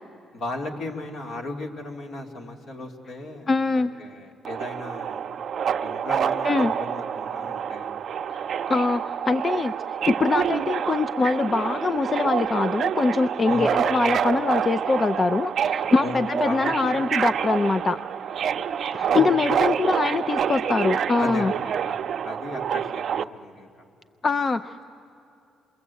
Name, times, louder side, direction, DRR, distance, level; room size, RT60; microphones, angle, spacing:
voice 1, 0.3-5.3 5.8-8.0 13.5-13.8 16.0-16.2 16.4-17.0 19.1-19.9 21.2-21.6 21.9-22.0 22.2-23.7, left 2 dB, 70° left, 2 dB, 2.7 m, -36 dB
voice 2, 3.5-3.9 6.4-6.7 8.3-18.0 18.9-21.5 24.2-24.8, left 4 dB, 35° left, 12 dB, 0.5 m, -23 dB
Subway metro underground, 4.4-23.2, right 8 dB, 60° right, 0.6 m, -27 dB
28.0 x 22.5 x 8.3 m, 2.8 s
cardioid pair, 90°, 0 cm